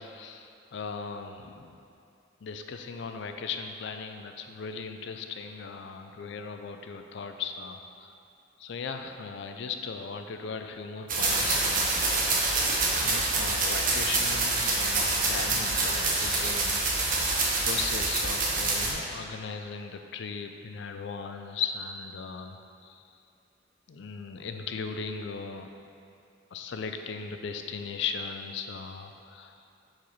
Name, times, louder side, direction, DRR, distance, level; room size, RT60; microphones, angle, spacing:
voice 1, 0.0-1.8 2.4-8.1 8.6-12.3 12.6-16.8 17.6-22.6 22.8-23.0 23.9-25.7 26.5-29.6, left 5 dB, 65° left, 6 dB, 0.4 m, -37 dB
sound 1, 11.1-18.9, right 3 dB, 45° right, 0.9 m, -26 dB
4.8 x 4.4 x 5.4 m, 2.5 s
head